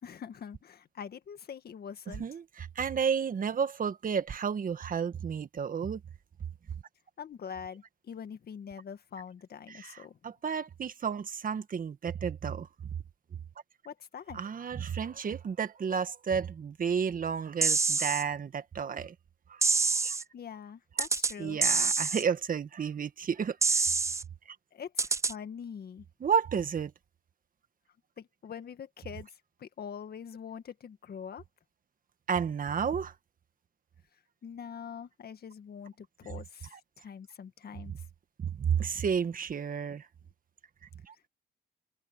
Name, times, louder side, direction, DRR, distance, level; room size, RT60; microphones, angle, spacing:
voice 1, 0.0-2.3 7.2-10.2 13.9-14.4 20.3-21.6 24.7-26.0 28.2-29.3 29.6-31.4 34.4-37.9, left 7 dB, 50° left, 1.8 m, -44 dB
voice 2, 2.1-6.0 9.7-12.7 14.3-19.1 19.5-20.2 21.4-23.8 24.5-24.6 26.2-26.9 32.3-33.1 36.7-36.8 37.9-38.0 38.4-40.1 41.0-41.1, right 7 dB, 45° right, 1.5 m, -32 dB
sound 1, 17.6-18.2 19.6-20.2 21.0-21.3 21.6-22.2 23.6-24.2 25.0-25.3, right 4 dB, 15° right, 0.3 m, -26 dB
cardioid pair, 90°, 20 cm